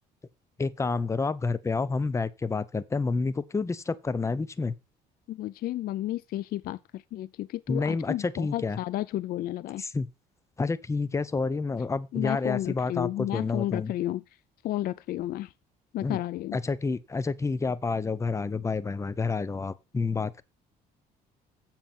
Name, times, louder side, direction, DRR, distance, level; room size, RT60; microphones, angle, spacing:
voice 1, 0.6-4.7 7.7-8.8 9.8-10.1 10.6-13.9 16.0-16.2 16.5-20.4, left 4 dB, 15° left, 0.7 m, -29 dB
voice 2, 5.3-9.8 12.1-14.2 14.6-15.5 15.9-16.6, left 14 dB, 60° left, 0.4 m, -32 dB
7.4 x 7.4 x 4.3 m
cardioid pair, 110°, 17 cm